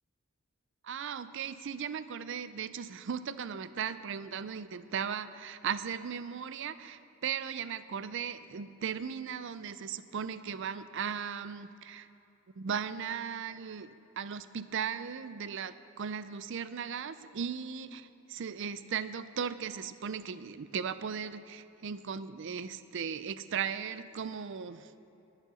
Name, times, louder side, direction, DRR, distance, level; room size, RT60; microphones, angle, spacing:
voice 1, 0.8-12.1 12.6-24.9, right 7 dB, 60° right, 14 dB, 0.4 m, -37 dB
11.5 x 9.0 x 6.9 m, 2.9 s
head